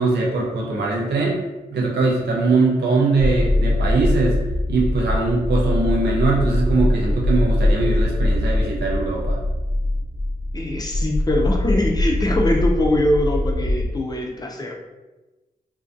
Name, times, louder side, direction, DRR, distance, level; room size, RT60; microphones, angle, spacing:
voice 1, 0.0-1.4 1.7-4.4 4.7-9.4, right 3 dB, 90° right, -2 dB, 0.5 m, -21 dB
sound 1, 3.2-13.9, left 1 dB, 85° left, 0.6 m, -22 dB
voice 2, 10.5-14.7, left 1 dB, 25° left, 1 dB, 0.5 m, -22 dB
2.5 x 2.2 x 2.5 m, 1.1 s
cardioid pair, 70°, 17 cm